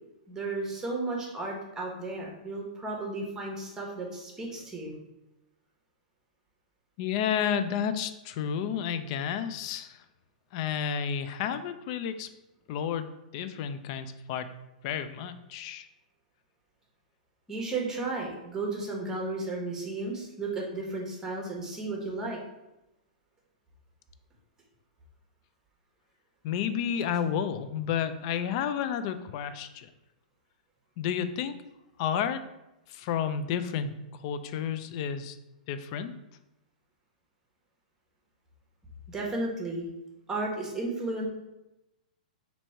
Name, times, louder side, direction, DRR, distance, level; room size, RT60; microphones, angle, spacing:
voice 1, 0.3-4.9 17.5-22.4 39.1-39.9 40.3-41.3, right 2 dB, 10° right, -1 dB, 0.9 m, -34 dB
voice 2, 7.0-10.0 10.5-12.3 12.7-14.5 14.8-15.9 26.4-29.9 31.0-31.5 32.0-32.4 32.9-35.4 35.7-36.1, left 8 dB, 45° left, 10 dB, 0.3 m, -31 dB
2.9 x 2.7 x 4.3 m, 0.94 s
hypercardioid pair, 130°, 4 cm